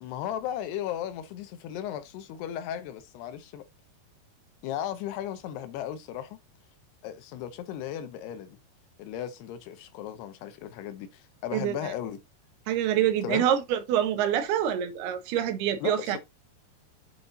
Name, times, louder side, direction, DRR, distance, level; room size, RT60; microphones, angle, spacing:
voice 1, 0.0-3.7 4.6-6.4 7.0-8.6 9.0-12.2 13.2-13.5 15.8-16.2, left 10 dB, 85° left, 3.0 m, -36 dB
voice 2, 12.7-16.2, right 10 dB, 80° right, 3.0 m, -26 dB
8.5 x 4.1 x 3.9 m
omnidirectional pair, 4.7 m